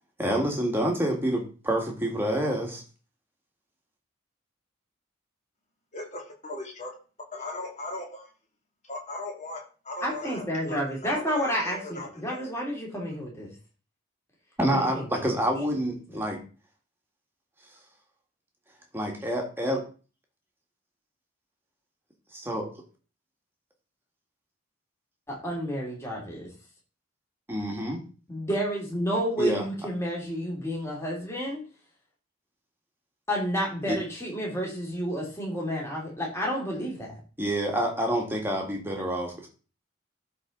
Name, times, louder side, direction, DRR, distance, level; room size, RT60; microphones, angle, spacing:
voice 1, 0.2-2.8 14.6-16.4 18.9-19.8 22.3-22.7 27.5-28.0 29.4-29.6 33.9-34.0 37.4-39.5, right 1 dB, 10° right, 1 dB, 1.8 m, -27 dB
voice 2, 5.9-6.9 7.3-8.3 8.9-10.8 11.0-12.6, left 2 dB, 35° left, -1 dB, 2.5 m, -38 dB
voice 3, 10.0-13.5 14.7-15.3 25.3-26.5 28.3-31.6 33.3-37.2, equal, 15° left, -3 dB, 2.7 m, -30 dB
12.5 x 4.4 x 3.9 m, 0.36 s
head